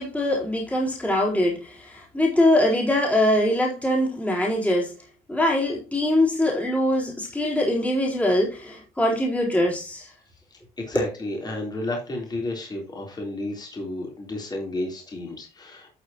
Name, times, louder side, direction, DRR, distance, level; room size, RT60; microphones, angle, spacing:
voice 1, 0.0-4.9 5.3-10.1 10.9-11.1, left 1 dB, 10° left, 3.8 m, -23 dB
voice 2, 10.5-15.9, left 2 dB, 25° left, 3.6 m, -32 dB
11.5 x 6.7 x 2.9 m
cardioid pair, 110°, 17 cm